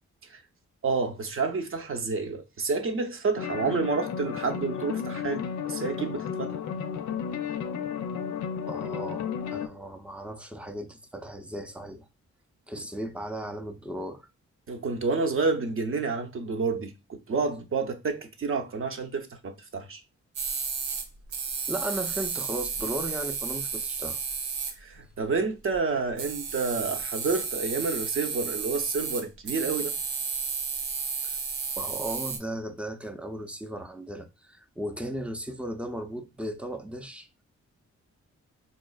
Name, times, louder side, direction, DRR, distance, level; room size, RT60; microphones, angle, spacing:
voice 1, 0.8-6.6 14.7-20.0 24.8-29.9, right 4 dB, 45° right, 0.7 m, -29 dB
sound 1, 3.4-9.7, left 7 dB, 75° left, 0.5 m, -33 dB
voice 2, 8.7-12.1 12.7-14.3 21.7-24.2 31.2-31.3 31.8-37.3, right 1 dB, 5° right, 0.5 m, -36 dB
sound 2, 20.4-21.1 21.3-24.7 25.7-25.8 26.1-32.4, right 5 dB, 85° right, 0.7 m, -32 dB
4.1 x 2.4 x 2.3 m
cardioid pair, 75°, 29 cm